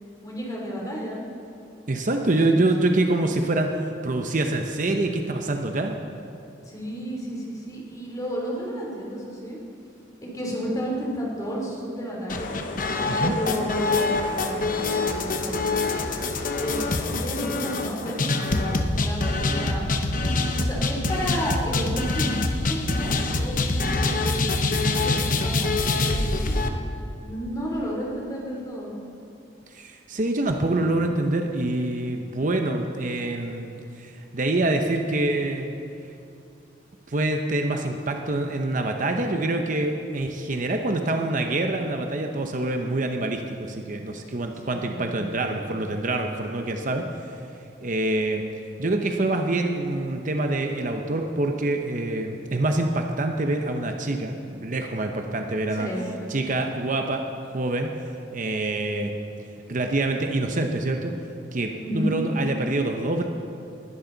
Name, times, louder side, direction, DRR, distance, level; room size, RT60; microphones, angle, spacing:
voice 1, 0.2-1.2 3.0-3.1 6.6-9.6 10.3-12.6 13.2-15.8 16.6-20.0 20.6-26.6 27.2-28.9 44.6-45.7 55.7-56.3 61.8-62.1, equal, 20° left, -3 dB, 3.2 m, -32 dB
voice 2, 1.9-3.7 4.0-5.9 13.1-13.3 29.7-35.8 37.1-47.1 47.8-48.4 48.8-55.9 56.3-57.2 57.5-57.9 58.3-59.1 59.7-61.1 61.5-63.2, right 2 dB, 45° right, 4 dB, 0.8 m, -25 dB
sound 1, 12.3-26.7, left 3 dB, 45° left, 0.9 m, -25 dB
20.0 x 11.5 x 4.0 m, 2.5 s
head